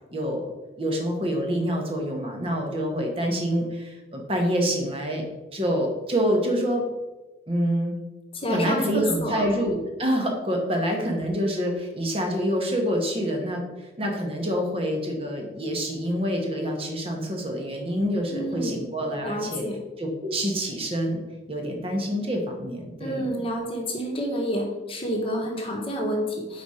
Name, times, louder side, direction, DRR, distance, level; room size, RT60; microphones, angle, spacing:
voice 1, 0.1-0.5 0.8-5.2 5.5-6.8 7.5-7.9 8.5-13.6 14.0-19.6 20.0-23.3, equal, 30° right, 2 dB, 1.0 m, -26 dB
voice 2, 8.3-9.5 18.3-18.8 19.2-19.8 23.0-26.6, equal, 30° left, 1 dB, 1.1 m, -29 dB
5.1 x 4.2 x 4.8 m, 1.1 s
head